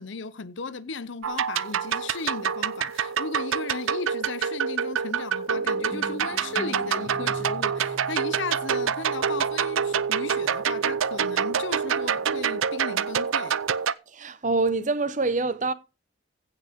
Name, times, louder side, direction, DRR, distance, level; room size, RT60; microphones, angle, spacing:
voice 1, 0.0-13.6, left 4 dB, 65° left, 0.7 m, -36 dB
sound 1, 1.2-13.9, right 7 dB, 80° right, 0.6 m, -26 dB
sound 2, 5.5-11.4, equal, 5° left, 0.5 m, -43 dB
voice 2, 14.1-15.7, right 3 dB, 40° right, 0.9 m, -25 dB
16.0 x 5.8 x 5.1 m
head